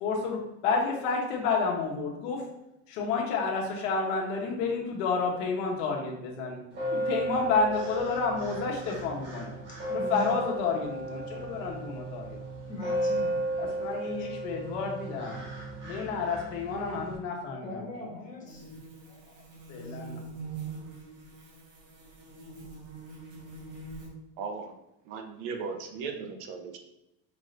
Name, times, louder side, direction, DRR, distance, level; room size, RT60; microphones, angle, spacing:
voice 1, 0.0-2.4 2.9-6.6 6.9-9.5 9.9-12.4 13.6-15.4 15.8-17.8 19.7-20.2, left 4 dB, 75° left, 0 dB, 1.1 m, -30 dB
sound 1, 6.7-17.2, right 1 dB, 30° right, 1.2 m, -34 dB
voice 2, 9.9-10.3 12.7-13.3 17.6-18.7, left 2 dB, 20° left, -3 dB, 1.0 m, -39 dB
sound 2, 18.5-24.1, right 4 dB, 90° right, 1.5 m, -43 dB
voice 3, 24.4-24.7 25.0-26.8, right 5 dB, 60° right, 5 dB, 0.6 m, -37 dB
5.3 x 2.6 x 3.2 m, 0.90 s
cardioid pair, 175°, 37 cm